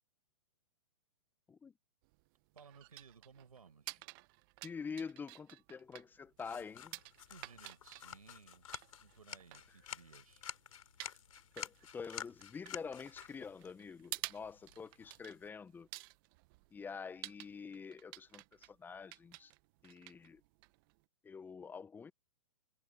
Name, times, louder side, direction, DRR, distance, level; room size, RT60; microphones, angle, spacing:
sound 1, 2.0-21.1, right 27 dB, 35° right, 0.9 m, -52 dB
voice 1, 2.5-4.0 7.3-10.4, right 5 dB, 80° right, 5.5 m, -60 dB
voice 2, 4.6-7.0 11.6-15.9 16.7-19.5 19.8-20.4 21.2-22.1, left 5 dB, 10° left, 0.7 m, -47 dB
sound 2, 6.4-15.5, left 9 dB, 65° left, 3.2 m, -51 dB
figure-of-eight pair, 120°, 19 cm